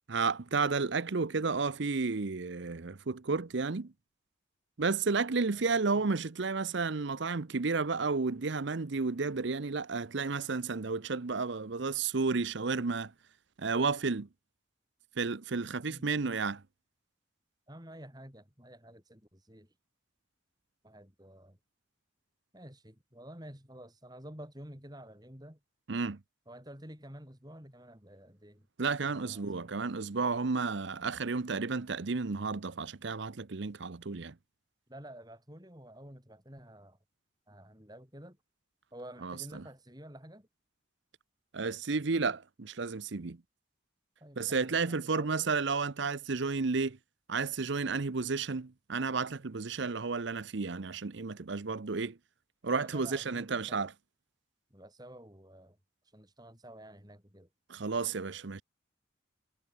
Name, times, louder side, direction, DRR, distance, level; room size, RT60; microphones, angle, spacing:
voice 1, 0.1-3.9 4.8-13.1 13.6-14.3 15.2-16.6 25.9-26.2 28.8-34.3 39.2-39.6 41.5-43.4 44.4-47.0 47.3-52.2 52.6-53.9 57.7-58.6, right 4 dB, 65° right, 0.7 m, -32 dB
voice 2, 5.5-6.0 15.9-16.1 17.7-19.8 20.8-21.6 22.5-25.6 26.5-28.7 29.0-29.9 34.9-37.0 37.5-38.4 38.9-40.5 44.2-45.5 52.7-53.9 54.7-55.8 56.0-57.5, right 1 dB, 20° right, 5.4 m, -50 dB
head